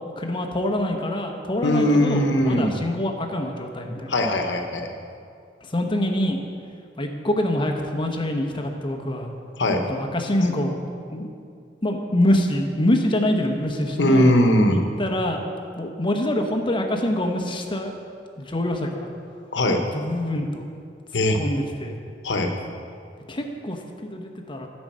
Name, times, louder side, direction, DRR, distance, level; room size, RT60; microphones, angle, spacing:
voice 1, 0.2-4.1 5.7-6.4 7.0-9.3 9.9-10.8 11.1-11.3 11.8-14.3 14.7-15.4 15.8-17.9 18.4-19.1 19.9-20.6 21.3-22.0 23.3-24.7, left 1 dB, 30° left, 3 dB, 0.9 m, -25 dB
voice 2, 1.6-2.8 4.1-4.9 9.6-9.8 14.0-14.8 19.5-19.8 21.1-21.4 22.2-22.5, left 1 dB, 80° left, 4 dB, 1.0 m, -20 dB
10.0 x 5.3 x 7.5 m, 2.3 s
head